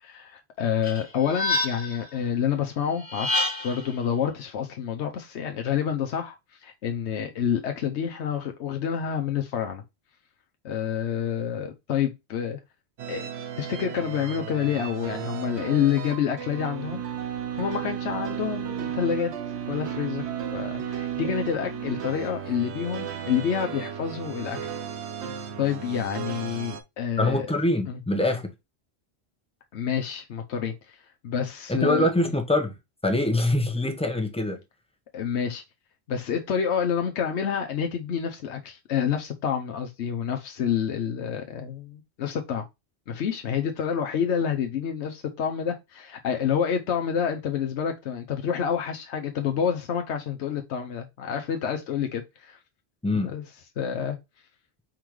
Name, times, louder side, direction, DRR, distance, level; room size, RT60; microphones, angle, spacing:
voice 1, 0.0-6.4 6.6-9.8 10.6-12.6 13.1-17.0 17.5-19.3 19.7-24.6 25.6-27.5 27.9-28.0 29.7-31.0 31.2-32.1 35.1-35.6 36.1-42.6 43.1-52.6 53.1-53.4 53.8-54.2, left 8 dB, 90° left, 1.0 m, -28 dB
sound 1, 0.8-2.1 3.0-3.9, left 2 dB, 50° left, 1.7 m, -28 dB
sound 2, 13.0-26.8, right 8 dB, 80° right, 1.0 m, -34 dB
voice 2, 27.2-28.5 31.7-32.7 33.0-34.6 53.0-53.3, left 1 dB, 5° left, 0.8 m, -24 dB
4.6 x 3.7 x 3.1 m
omnidirectional pair, 1.1 m